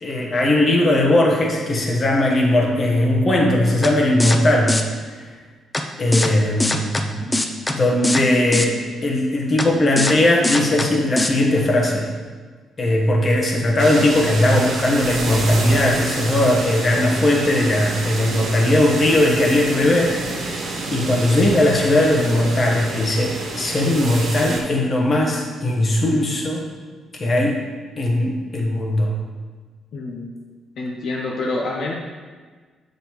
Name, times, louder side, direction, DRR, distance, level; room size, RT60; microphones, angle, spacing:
voice 1, 0.0-4.8 5.1-5.3 6.0-7.3 7.7-12.1 12.8-26.6 27.1-27.6 28.0-29.1, left 1 dB, 40° left, 0 dB, 1.2 m, -19 dB
sound 1, 3.8-3.9 4.2-4.4 4.7-4.8 5.7-5.8 6.1-6.3 6.6-7.0 7.3-7.7 8.0-8.2 8.5-8.7 9.6-9.7 10.0-10.1 10.4-10.9 11.2-11.3, left 1 dB, 15° left, 0.5 m, -21 dB
sound 2, 13.8-24.6, right 3 dB, 75° right, 1.1 m, -28 dB
voice 2, 29.9-30.3 30.8-31.9, left 2 dB, 70° left, -2 dB, 0.7 m, -27 dB
7.1 x 5.2 x 3.1 m, 1.5 s
cardioid pair, 90°, 0 cm